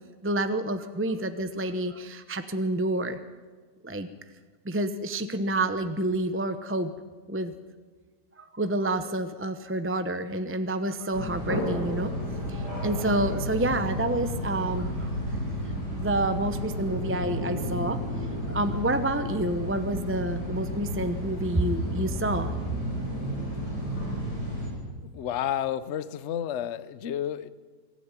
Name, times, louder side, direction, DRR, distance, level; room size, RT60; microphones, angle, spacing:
voice 1, 0.2-3.2 3.8-4.1 4.6-6.9 7.3-7.5 8.4-12.1 12.5-15.1 15.9-18.0 18.5-22.5, right 1 dB, 15° right, 9 dB, 0.5 m, -28 dB
sound 1, 11.1-24.7, equal, 75° left, 7.1 m, -32 dB
voice 2, 25.1-27.5, left 10 dB, 50° left, 15 dB, 1.0 m, -31 dB
24.0 x 14.5 x 9.8 m, 1.5 s
omnidirectional pair, 1.8 m